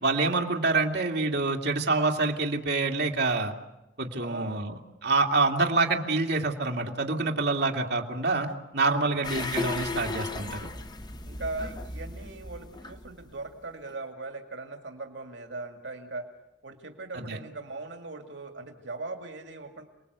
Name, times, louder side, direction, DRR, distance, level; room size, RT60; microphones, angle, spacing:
voice 1, 0.0-3.5 4.0-10.7 17.1-17.4, right 3 dB, 65° right, 1 dB, 2.6 m, -27 dB
voice 2, 4.2-4.7 8.9-9.2 11.2-16.3 16.6-19.8, right 3 dB, 85° right, 4 dB, 2.3 m, -39 dB
sound 1, 9.2-13.5 13.9-14.0, left 3 dB, 25° left, 1.1 m, -36 dB
29.5 x 20.5 x 8.2 m, 0.97 s
head